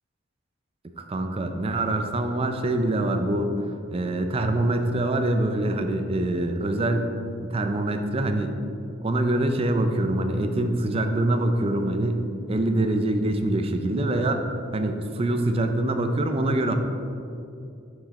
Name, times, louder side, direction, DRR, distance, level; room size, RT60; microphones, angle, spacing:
voice 1, 1.0-3.5 3.9-7.1 7.4-8.6 9.0-12.2 12.5-14.5 14.7-16.8, right 1 dB, 30° right, 6 dB, 0.4 m, -24 dB
6.1 x 5.0 x 4.1 m, 2.6 s
head